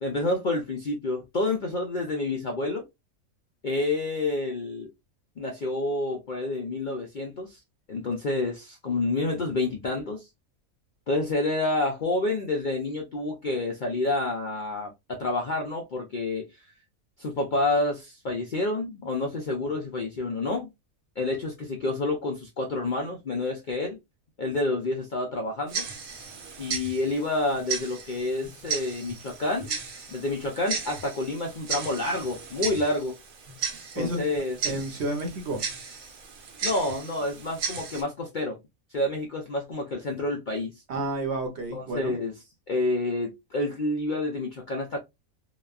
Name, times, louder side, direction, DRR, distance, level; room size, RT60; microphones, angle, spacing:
voice 1, 0.0-2.9 3.6-4.9 5.4-7.6 7.9-10.3 11.1-16.5 17.2-20.7 21.2-24.0 24.4-25.8 26.6-29.8 30.1-33.1 33.9-34.6 36.6-38.6 38.9-40.7 41.7-42.3 42.7-45.0, left 2 dB, 60° left, 0.5 m, -28 dB
Tick-tock, 25.7-38.0, right 5 dB, 90° right, 1.3 m, -36 dB
voice 2, 33.9-34.3 34.6-35.6 40.9-42.1, right 2 dB, 60° right, 0.9 m, -30 dB
3.0 x 2.1 x 2.3 m
omnidirectional pair, 1.4 m